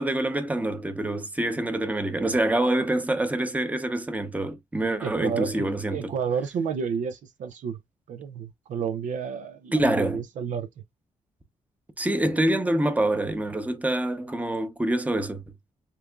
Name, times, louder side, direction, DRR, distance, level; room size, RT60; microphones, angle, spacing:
voice 1, 0.0-6.1 9.7-10.2 12.0-15.4, right 1 dB, 10° right, 0.8 m, -26 dB
voice 2, 5.0-7.8 8.1-10.7, right 6 dB, 80° right, 0.5 m, -31 dB
6.6 x 2.5 x 2.3 m
cardioid pair, 105°, 13 cm